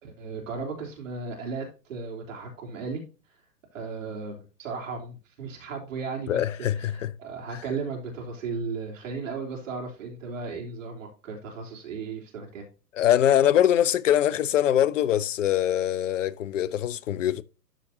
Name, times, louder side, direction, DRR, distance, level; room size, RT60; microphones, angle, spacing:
voice 1, 0.0-3.0 3.7-12.6, right 4 dB, 50° right, 3.3 m, -35 dB
voice 2, 6.3-7.1 13.0-17.4, left 11 dB, 50° left, 0.7 m, -23 dB
13.0 x 5.0 x 2.7 m
figure-of-eight pair, 115°, 48 cm